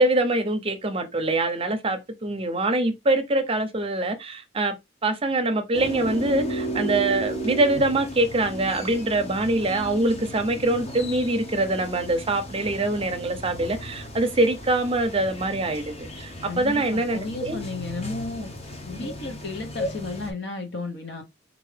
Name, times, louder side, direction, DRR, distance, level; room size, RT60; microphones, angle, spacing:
voice 1, 0.0-4.7 5.0-17.6 18.9-19.1, right 2 dB, 30° right, 0.6 m, -24 dB
sound 1, 5.7-20.3, right 1 dB, 35° left, 0.9 m, -35 dB
voice 2, 16.4-18.5 18.8-21.2, left 3 dB, 65° left, 0.9 m, -33 dB
4.6 x 2.5 x 3.3 m
head